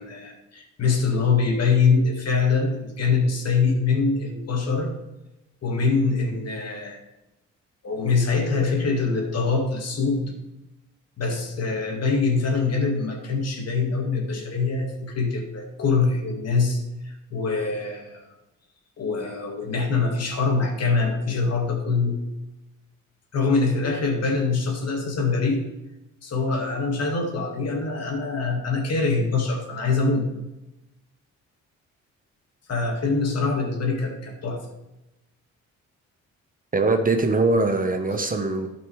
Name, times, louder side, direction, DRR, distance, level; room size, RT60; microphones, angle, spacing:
voice 1, 0.0-4.9 5.6-7.0 7.8-10.3 11.2-18.2 19.0-22.2 23.3-25.6 26.2-30.3 32.7-34.6, left 4 dB, 55° left, 2 dB, 2.3 m, -24 dB
voice 2, 36.7-38.7, right 3 dB, 30° right, 6 dB, 1.2 m, -22 dB
12.0 x 5.4 x 4.8 m, 0.96 s
cardioid pair, 90°, 30 cm